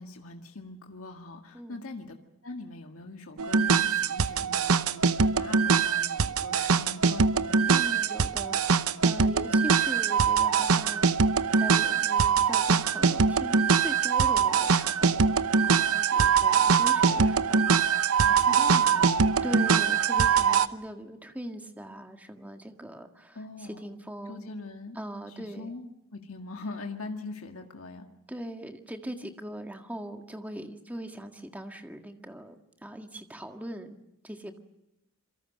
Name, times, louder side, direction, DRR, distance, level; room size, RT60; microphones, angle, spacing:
voice 1, 0.0-2.2 2.4-7.5 18.1-19.5 23.4-23.9 24.3-25.0 25.4-25.9 26.1-28.0, left 3 dB, 75° left, 3 dB, 1.9 m, -42 dB
sound 1, 3.4-20.7, right 5 dB, 85° right, 0.9 m, -23 dB
voice 2, 7.7-11.1 11.5-15.4 15.6-18.2 19.4-24.6 24.9-25.8 28.3-34.0 34.2-34.6, equal, 5° right, 5 dB, 1.8 m, -40 dB
27.5 x 23.5 x 6.5 m, 0.89 s
head